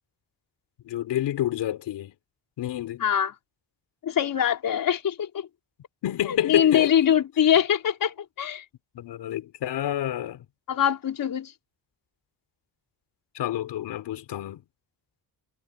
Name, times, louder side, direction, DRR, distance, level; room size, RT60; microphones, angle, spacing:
voice 1, 0.8-2.1 2.6-3.0 6.0-6.9 8.9-10.5 13.3-14.6, left 12 dB, 85° left, 3.9 m, -28 dB
voice 2, 3.0-3.3 4.0-5.5 6.3-8.6 10.7-11.5, left 9 dB, 55° left, 4.7 m, -23 dB
cardioid pair, 155°, 40 cm